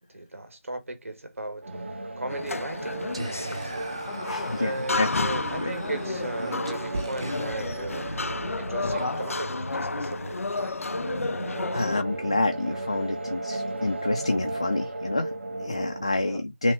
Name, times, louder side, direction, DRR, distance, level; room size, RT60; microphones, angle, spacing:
voice 1, 0.1-1.6 2.2-3.0 3.4-3.7 4.6-8.1 8.6-10.8 16.1-16.4, right 2 dB, 80° right, 1.5 m, -36 dB
sound 1, 1.6-16.1, right 2 dB, 55° right, 1.2 m, -36 dB
sound 2, 2.3-12.0, left 3 dB, 90° left, 0.4 m, -32 dB
Whispering, 3.1-9.6, right 2 dB, 25° right, 0.5 m, -38 dB
voice 2, 4.3-5.3 5.6-5.7 11.5-16.7, left 2 dB, 25° left, 0.4 m, -28 dB
5.8 x 2.0 x 3.5 m
figure-of-eight pair, 175°, 7 cm